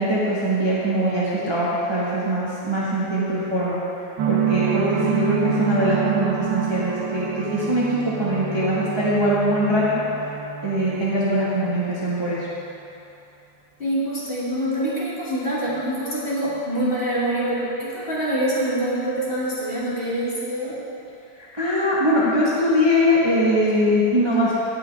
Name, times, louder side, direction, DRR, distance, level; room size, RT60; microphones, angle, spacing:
voice 1, 0.0-3.8 4.3-10.3 10.6-12.5 21.4-24.6, equal, 15° right, -9 dB, 1.3 m, -22 dB
sound 1, 4.2-12.6, right 11 dB, 85° right, 1.4 m, -28 dB
voice 2, 13.8-20.8, right 1 dB, 30° left, -9 dB, 2.6 m, -25 dB
18.0 x 6.0 x 3.4 m, 2.7 s
omnidirectional pair, 2.0 m